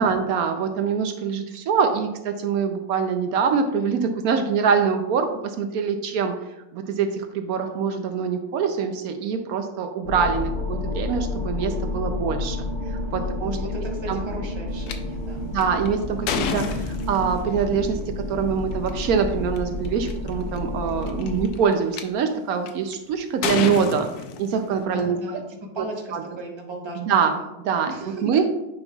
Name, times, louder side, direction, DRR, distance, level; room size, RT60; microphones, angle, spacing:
voice 1, 0.0-6.3 6.7-12.6 13.1-13.6 14.1-14.2 15.4-24.1 24.4-25.4 26.1-26.2 27.0-27.3 27.6-28.4, right 6 dB, 75° right, 6 dB, 1.0 m, -24 dB
sound 1, 10.0-21.5, left 2 dB, 55° left, 1.6 m, -30 dB
voice 2, 13.1-15.4 24.8-27.5 27.9-28.4, right 1 dB, 20° right, 0 dB, 0.8 m, -36 dB
sound 2, 14.9-15.0 15.6-17.4 18.7-18.9 19.6-19.7 19.8-20.3 21.0-22.0 22.7-22.9 23.4-24.8, left 6 dB, 85° left, 1.2 m, -28 dB
8.9 x 5.3 x 2.3 m, 0.98 s
omnidirectional pair, 1.6 m